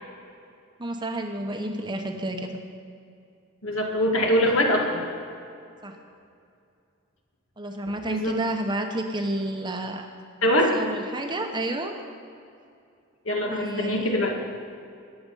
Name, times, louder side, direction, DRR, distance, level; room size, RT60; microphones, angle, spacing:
voice 1, 0.8-2.6 5.8-6.0 7.6-10.1 10.7-11.9 13.4-14.1, right 1 dB, 20° right, 4 dB, 1.0 m, -30 dB
voice 2, 3.6-5.1 8.0-8.4 10.4-10.8 13.3-14.4, left 1 dB, 70° left, 1 dB, 2.1 m, -23 dB
19.5 x 7.8 x 5.5 m, 2.5 s
head